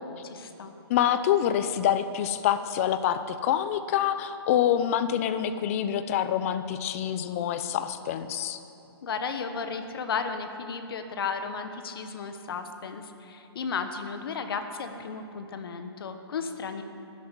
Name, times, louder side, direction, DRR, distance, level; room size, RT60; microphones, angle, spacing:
voice 1, 0.2-0.7 9.0-16.8, left 5 dB, 60° left, 8 dB, 1.2 m, -34 dB
voice 2, 0.9-8.6, left 10 dB, 30° left, 11 dB, 0.7 m, -26 dB
13.5 x 8.4 x 9.7 m, 2.7 s
hypercardioid pair, 160°, 14 cm